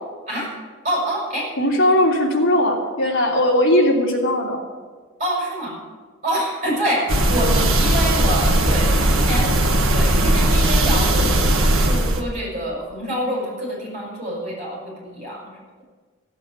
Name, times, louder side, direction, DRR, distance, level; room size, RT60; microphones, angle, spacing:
voice 1, 0.8-1.5 5.2-5.8 6.2-9.6 9.9-11.4 11.9-15.4, right 1 dB, 35° right, -4 dB, 6.1 m, -26 dB
voice 2, 1.6-4.6, left 1 dB, 65° left, -2 dB, 3.1 m, -18 dB
sound 1, 7.1-12.2, right 1 dB, 70° right, 1.6 m, -18 dB
16.0 x 8.4 x 8.2 m, 1.5 s
head